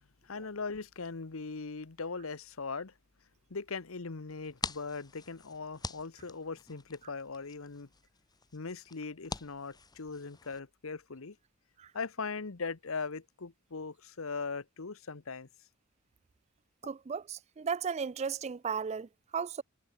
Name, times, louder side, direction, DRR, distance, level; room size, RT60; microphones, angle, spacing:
voice 1, 0.2-2.9 3.5-7.9 8.5-11.4 11.9-15.5, left 4 dB, 90° left, 1.0 m, -40 dB
sound 1, 4.3-10.6, left 4 dB, 20° left, 1.9 m, -45 dB
voice 2, 16.8-19.6, right 6 dB, 30° right, 0.4 m, -35 dB
head